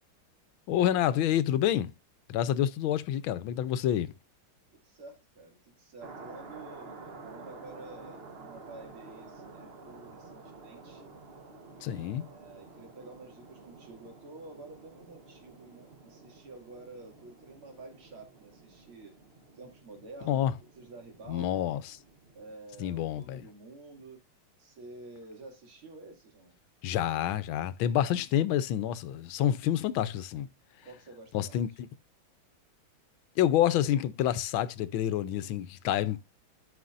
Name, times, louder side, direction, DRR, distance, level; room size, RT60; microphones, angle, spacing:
voice 1, 0.7-1.9 2.3-4.1 11.8-12.2 20.3-20.5 21.3-21.8 22.8-23.4 26.8-30.5 31.3-31.7 33.4-36.2, left 11 dB, 80° left, 1.4 m, -28 dB
voice 2, 4.8-11.0 11.8-19.2 19.5-21.8 22.3-24.2 24.6-26.6 30.8-31.8, right 3 dB, 85° right, 3.3 m, -50 dB
sound 1, 6.0-22.5, right 3 dB, 40° right, 1.0 m, -50 dB
13.0 x 5.7 x 2.5 m
omnidirectional pair, 2.3 m